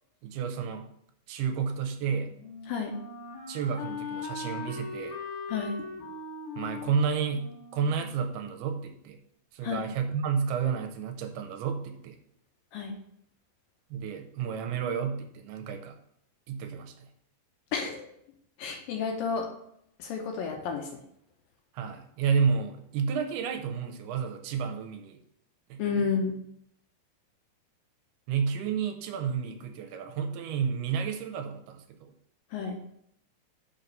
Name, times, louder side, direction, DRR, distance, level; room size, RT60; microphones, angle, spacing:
voice 1, 0.2-0.9 1.3-2.3 3.5-5.2 6.6-9.2 9.5-12.2 13.9-16.0 16.5-17.1 21.7-25.2 25.7-26.1 28.3-32.1, right 6 dB, 80° right, 6 dB, 2.5 m, -31 dB
Wind instrument woodwind instrument, 2.0-8.8, left 4 dB, 50° left, 2.0 m, -40 dB
voice 2, 5.5-5.8 9.6-9.9 12.7-13.0 17.7-18.1 18.6-19.5 20.0-20.9 25.8-26.4 32.5-32.8, left 5 dB, 75° left, 2 dB, 2.2 m, -31 dB
5.9 x 5.6 x 5.2 m, 0.71 s
omnidirectional pair, 4.8 m